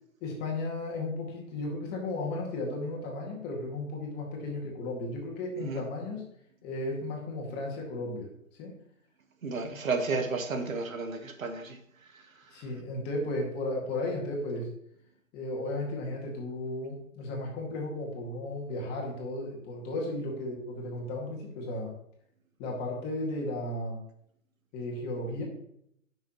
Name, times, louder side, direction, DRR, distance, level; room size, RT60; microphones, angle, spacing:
voice 1, 0.2-6.2 6.6-8.3 8.6-8.7 12.5-14.7 15.3-21.9 22.6-24.0 24.7-25.4, left 2 dB, 25° left, -1 dB, 2.0 m, -34 dB
voice 2, 9.4-11.8 12.1-12.2, right 4 dB, 75° right, 6 dB, 1.4 m, -32 dB
9.2 x 6.2 x 3.0 m, 0.72 s
hypercardioid pair, 135°, 41 cm